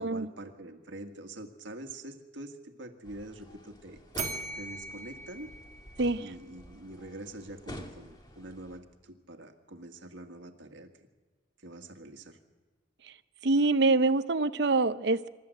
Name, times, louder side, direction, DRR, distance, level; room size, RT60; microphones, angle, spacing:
voice 1, 0.0-4.0 4.5-5.5 6.2-10.9 11.6-12.4, right 1 dB, 75° right, 5 dB, 1.9 m, -45 dB
sound 1, 3.0-8.8, equal, 20° left, 1.8 m, -48 dB
Bell, 4.1-6.4, right 4 dB, 40° right, 1.6 m, -40 dB
voice 2, 13.4-15.3, right 3 dB, 60° right, 13 dB, 0.7 m, -25 dB
26.5 x 13.5 x 7.9 m, 1.4 s
head